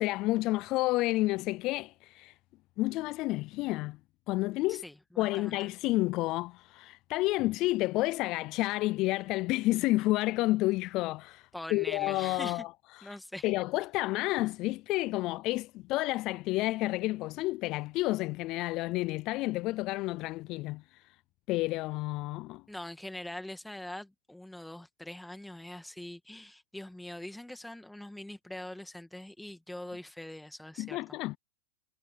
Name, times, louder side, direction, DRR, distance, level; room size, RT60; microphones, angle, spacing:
voice 1, 0.0-2.3 2.8-4.0 4.3-4.8 5.2-12.7 13.0-13.1 13.4-20.8 21.5-22.6 30.8-31.4, left 19 dB, 45° left, 0.4 m, -30 dB
voice 2, 4.7-5.7 11.5-12.6 13.0-13.5 22.7-31.0, left 1 dB, 5° left, 2.1 m, -43 dB
hypercardioid pair, 125°, 0 cm